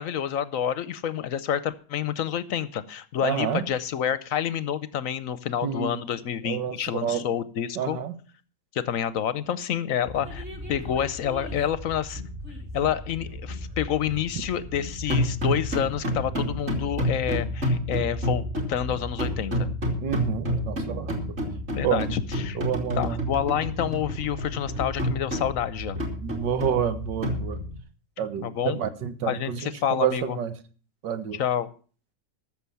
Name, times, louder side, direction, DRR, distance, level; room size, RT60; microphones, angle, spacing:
voice 1, 0.0-8.0 8.7-12.2 12.7-19.7 21.7-22.6 23.0-26.0 28.4-28.8 29.3-30.4 31.3-31.7, left 9 dB, 60° left, 1.0 m, -28 dB
voice 2, 3.2-3.7 5.6-6.0 6.4-6.8 7.0-7.2 7.8-8.1 20.0-21.1 21.8-22.2 22.5-23.3 26.2-27.6 28.2-30.5 31.0-31.4, right 8 dB, 85° right, 1.8 m, -28 dB
sound 1, 10.1-27.8, equal, 35° right, 3.2 m, -30 dB
14.0 x 6.9 x 6.9 m
omnidirectional pair, 1.9 m